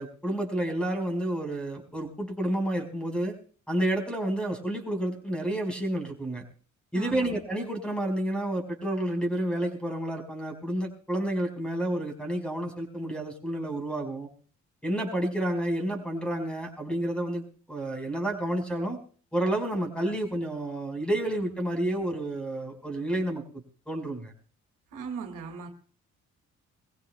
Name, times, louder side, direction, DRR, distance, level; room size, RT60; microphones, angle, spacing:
voice 1, 0.0-3.3 3.7-6.4 6.9-14.3 14.8-19.0 19.3-24.3, right 1 dB, 5° left, 4.7 m, -30 dB
voice 2, 6.9-7.3 24.9-25.7, right 6 dB, 85° right, 2.2 m, -38 dB
22.5 x 16.0 x 2.2 m
cardioid pair, 90°, 30 cm